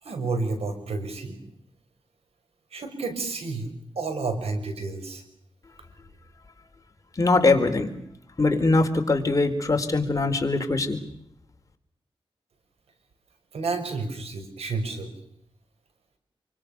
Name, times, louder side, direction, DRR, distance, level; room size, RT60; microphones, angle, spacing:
voice 1, 0.0-1.4 2.7-5.2 13.5-15.1, right 3 dB, 85° right, 7 dB, 6.2 m, -30 dB
voice 2, 7.2-7.9 8.4-11.0, left 3 dB, 35° left, 5 dB, 4.1 m, -22 dB
27.5 x 24.5 x 7.0 m, 0.74 s
wide cardioid pair, 90°, 10 cm